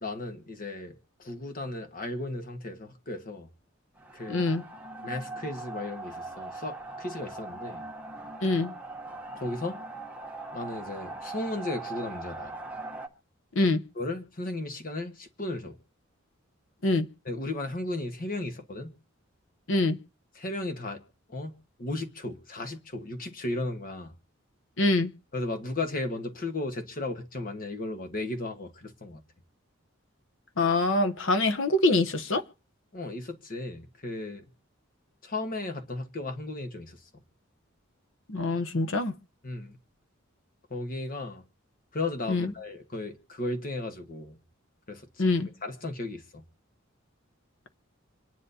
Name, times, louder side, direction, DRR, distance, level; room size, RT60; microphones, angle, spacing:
voice 1, 0.0-3.5 4.1-4.5 5.0-7.8 9.4-9.8 10.5-12.6 13.9-15.8 17.2-18.9 20.3-21.0 21.3-21.5 21.8-24.1 25.3-29.2 32.9-34.4 35.2-37.1 39.4-39.8 40.7-41.4 41.9-44.4 44.9-45.1 45.6-46.4, left 2 dB, 45° left, 1.4 m, -35 dB
sound 1, 4.0-13.1, right 2 dB, 5° right, 1.0 m, -40 dB
voice 2, 4.3-4.6 8.4-8.7 13.5-13.8 16.8-17.1 19.7-20.0 24.8-25.1 30.6-32.4 38.3-39.1 42.3-42.5 45.2-45.5, left 2 dB, 65° left, 0.9 m, -24 dB
26.5 x 10.0 x 2.8 m
head